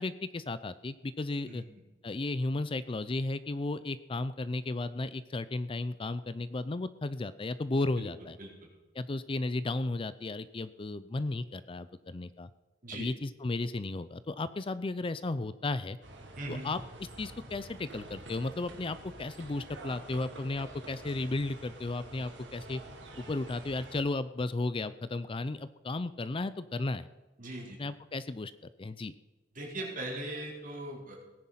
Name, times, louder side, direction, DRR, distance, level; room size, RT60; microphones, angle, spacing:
voice 1, 0.0-1.6 2.0-8.4 8.9-12.5 12.9-16.0 16.5-16.8 17.2-22.8 23.2-27.1 27.8-28.5 28.8-29.1, left 2 dB, 30° left, 15 dB, 0.5 m, -34 dB
sound 1, 16.0-24.0, right 2 dB, 70° right, 3.3 m, -48 dB
voice 2, 16.4-16.7 27.4-27.8 29.5-31.2, right 1 dB, 45° right, -1 dB, 4.2 m, -39 dB
18.5 x 10.0 x 5.7 m, 1.2 s
head